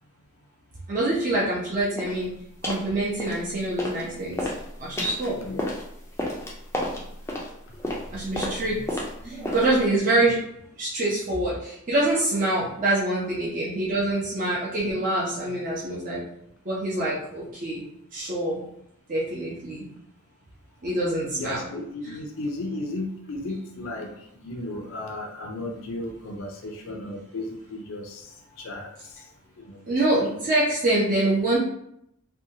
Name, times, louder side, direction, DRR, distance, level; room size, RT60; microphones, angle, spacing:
voice 1, 0.9-2.3 2.6-4.4 4.8-5.4 8.1-8.8 9.2-10.4 10.8-16.2 16.7-17.8 18.1-18.6 19.1-19.9 20.8-21.6 22.0-22.2 29.9-31.6, right 2 dB, 40° right, -7 dB, 0.6 m, -25 dB
sound 1, 2.0-2.2 2.6-2.9 3.2-4.0 4.3-9.9, left 1 dB, 10° left, 0.4 m, -32 dB
voice 2, 21.3-29.1 29.6-30.0, left 2 dB, 70° left, 2 dB, 0.4 m, -35 dB
2.6 x 2.2 x 2.7 m, 0.75 s
head